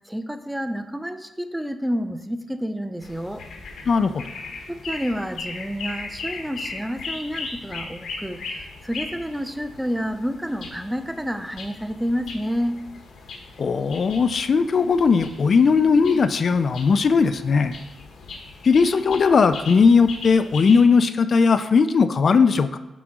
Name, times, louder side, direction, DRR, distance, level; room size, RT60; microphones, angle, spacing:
voice 1, 0.1-3.4 4.7-12.8, equal, 5° right, 9 dB, 0.6 m, -29 dB
sound 1, 3.0-20.9, left 3 dB, 80° left, 1.2 m, -38 dB
voice 2, 3.9-4.2 13.6-17.7 18.6-22.8, left 5 dB, 55° left, 11 dB, 0.4 m, -18 dB
6.1 x 3.9 x 6.0 m, 1.1 s
cardioid pair, 75°, 0 cm